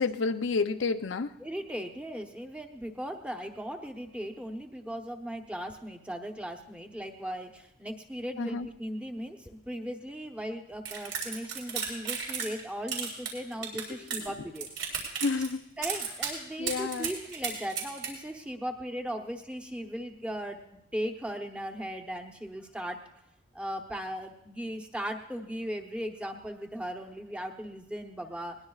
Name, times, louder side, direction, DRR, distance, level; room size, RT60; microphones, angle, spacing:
voice 1, 0.0-1.3 8.4-8.7 15.2-15.6 16.6-17.1, left 4 dB, 85° left, 8 dB, 0.6 m, -29 dB
voice 2, 1.4-14.7 15.8-23.0 23.5-28.6, equal, 5° right, 3 dB, 0.9 m, -37 dB
sound 1, 10.8-12.6 12.9-14.3 14.5-15.5 15.8-16.3 16.7-18.1, right 7 dB, 70° right, 3.7 m, -33 dB
20.5 x 19.5 x 2.4 m, 0.83 s
head